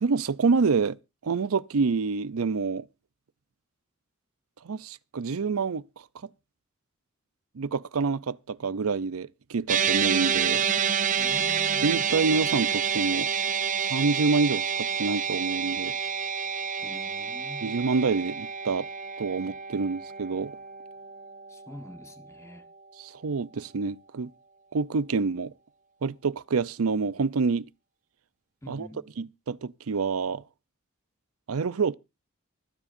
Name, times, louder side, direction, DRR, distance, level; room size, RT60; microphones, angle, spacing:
voice 1, 0.0-2.9 4.6-5.8 7.5-10.6 11.8-13.3 13.8-15.9 17.6-18.9 19.2-20.5 23.0-24.3 24.7-25.5 26.0-27.7 28.7-28.9 29.2-30.4 31.5-31.9, right 4 dB, 90° right, 0.6 m, -27 dB
sound 1, 9.7-22.1, right 7 dB, 35° right, 0.6 m, -28 dB
voice 2, 11.2-12.0 16.8-17.7 21.5-22.7 28.6-29.1, left 1 dB, 15° left, 1.2 m, -45 dB
24.5 x 9.9 x 2.6 m
head